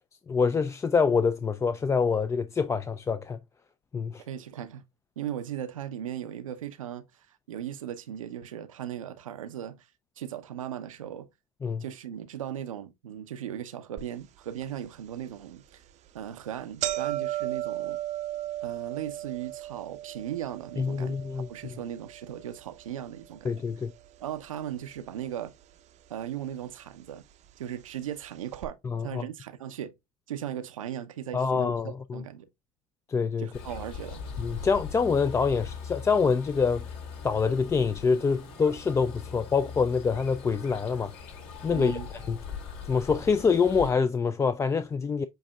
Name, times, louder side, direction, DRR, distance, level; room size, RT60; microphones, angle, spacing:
voice 1, 0.3-3.4 3.9-4.2 11.6-11.8 20.8-21.8 23.4-23.9 28.8-29.2 31.3-32.2 33.1-33.5 34.4-36.8 37.2-41.1 41.6-42.0 42.3-42.4 42.9-45.2, left 5 dB, 15° left, 0.3 m, -26 dB
voice 2, 4.3-4.8 5.2-7.0 7.5-9.9 10.2-11.3 11.8-15.8 16.1-18.0 18.6-21.2 21.5-23.6 24.2-25.5 26.1-27.2 27.6-28.8 29.0-29.9 30.3-32.5 33.4-34.2 41.7-42.1, right 10 dB, 90° right, 0.6 m, -37 dB
sound 1, 14.0-14.1 14.6-14.7 15.5-15.7 16.1-16.2 16.4-24.6 24.9-25.6 26.4-26.5 27.5-27.6 27.9-28.0 28.5-28.7, right 13 dB, 45° right, 0.6 m, -36 dB
sound 2, 33.5-43.9, left 6 dB, 60° left, 2.3 m, -41 dB
7.6 x 2.7 x 2.2 m
hypercardioid pair, 80°, 17 cm